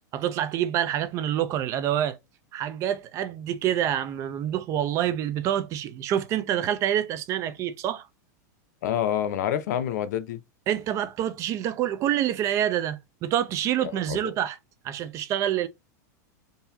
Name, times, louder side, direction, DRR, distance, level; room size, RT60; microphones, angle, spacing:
voice 1, 0.1-2.2 2.5-8.1 10.7-14.6 14.8-15.7, right 11 dB, 30° right, 0.5 m, -27 dB
voice 2, 8.8-10.4 13.8-14.3, left 10 dB, 70° left, 0.6 m, -28 dB
3.9 x 2.7 x 2.6 m
supercardioid pair, 150°, 10 cm